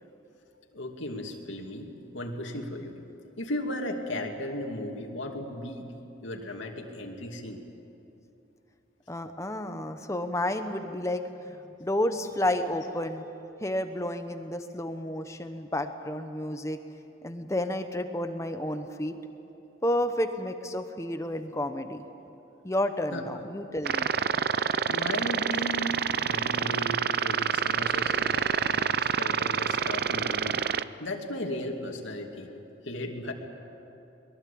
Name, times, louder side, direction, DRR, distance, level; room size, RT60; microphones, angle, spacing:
voice 1, 0.7-3.0 3.4-5.9 6.2-7.6 23.1-23.2 24.9-30.6 31.0-32.5 32.8-33.3, left 1 dB, 80° left, 2 dB, 2.6 m, -36 dB
voice 2, 9.1-13.2 13.6-16.8 17.2-19.2 19.8-22.0 22.6-24.1, left 1 dB, 15° left, 8 dB, 1.0 m, -31 dB
sound 1, 23.9-30.8, right 7 dB, 55° right, 0.5 m, -27 dB
23.0 x 22.0 x 8.6 m, 2.9 s
head